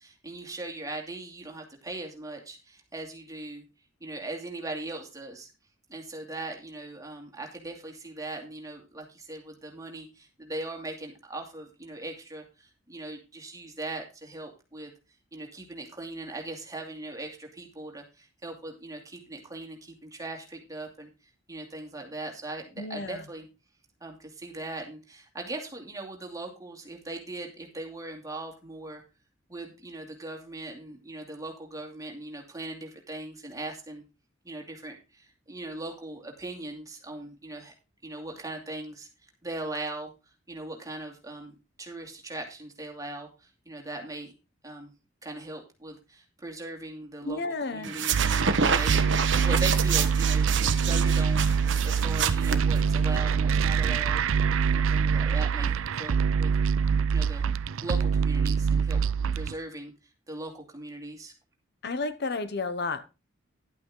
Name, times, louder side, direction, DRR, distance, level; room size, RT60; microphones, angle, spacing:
voice 1, 0.0-3.6 4.0-5.5 5.9-14.9 15.3-23.5 24.0-29.0 29.5-34.0 34.4-37.7 38.0-40.1 40.5-44.3 44.6-44.9 45.2-47.4 47.7-49.0 49.4-54.2 54.7-56.5 57.1-57.5 57.8-59.0 59.3-59.9 60.3-61.3, right 2 dB, 15° right, 2.6 m, -39 dB
voice 2, 22.8-23.2 47.2-47.9 61.8-63.0, left 3 dB, 55° left, 0.9 m, -32 dB
sound 1, 47.8-53.2, right 6 dB, 60° right, 1.2 m, -28 dB
sound 2, 48.1-59.5, right 6 dB, 80° right, 0.4 m, -25 dB
11.5 x 8.5 x 3.8 m
head